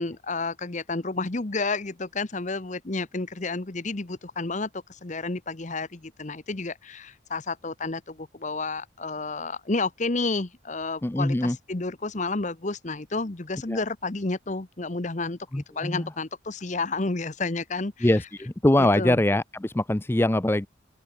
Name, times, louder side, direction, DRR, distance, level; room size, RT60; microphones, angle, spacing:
voice 1, 0.0-18.1 18.8-19.2, left 3 dB, 35° left, 1.0 m, -31 dB
voice 2, 11.0-11.6 13.7-13.8 15.5-16.1 18.0-20.7, left 1 dB, 10° left, 0.4 m, -23 dB
open air
head